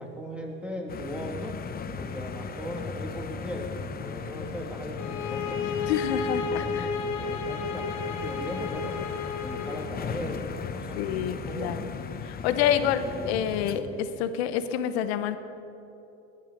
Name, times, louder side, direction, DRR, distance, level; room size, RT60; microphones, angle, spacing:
voice 1, 0.0-1.6 2.0-5.7 6.2-9.0 9.4-11.9 12.6-13.4 13.7-14.0, equal, 5° right, 0 dB, 2.4 m, -38 dB
sound 1, 0.9-13.8, left 6 dB, 30° left, 0.8 m, -37 dB
sound 2, 5.0-9.9, left 5 dB, 60° left, 1.3 m, -32 dB
voice 2, 5.9-6.9 11.0-11.8 12.4-13.8 14.2-15.4, left 9 dB, 80° left, 10 dB, 1.0 m, -27 dB
18.5 x 10.5 x 5.2 m, 2.9 s
supercardioid pair, 100°, 32 cm